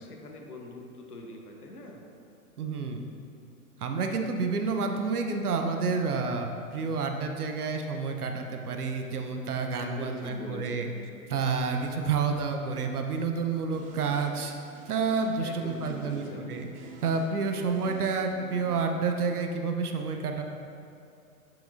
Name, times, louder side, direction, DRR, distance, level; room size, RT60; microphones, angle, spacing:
voice 1, 0.0-2.0 9.8-10.9 15.4-16.6, left 2 dB, 85° left, 1 dB, 1.0 m, -42 dB
voice 2, 2.6-3.1 3.8-10.9 11.3-14.5 14.9-16.7 17.0-20.4, right 4 dB, 80° right, 4 dB, 0.7 m, -29 dB
sound 1, 13.7-18.8, right 3 dB, 20° right, 0.5 m, -49 dB
7.0 x 5.9 x 2.5 m, 2.6 s
figure-of-eight pair, 105°, 45 cm